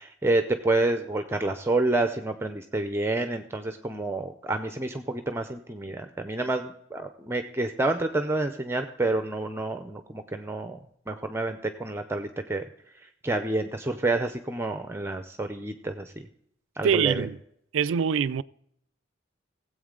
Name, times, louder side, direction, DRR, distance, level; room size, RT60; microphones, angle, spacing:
voice 1, 0.0-10.8 11.1-12.6 13.2-16.3 16.8-17.3, right 2 dB, 15° right, 0.6 m, -28 dB
voice 2, 16.8-17.4 17.7-18.4, right 7 dB, 80° right, 0.4 m, -24 dB
17.5 x 8.0 x 3.8 m
head